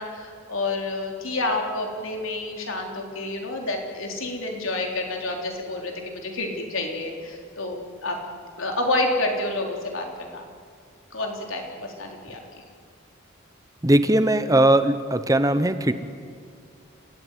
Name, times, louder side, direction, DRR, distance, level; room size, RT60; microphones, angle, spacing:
voice 1, 0.0-8.2 8.6-10.5 11.1-12.4, left 2 dB, 90° left, 2 dB, 3.9 m, -29 dB
voice 2, 13.8-15.9, right 1 dB, 15° right, 11 dB, 0.9 m, -19 dB
30.0 x 15.0 x 9.3 m, 2.3 s
head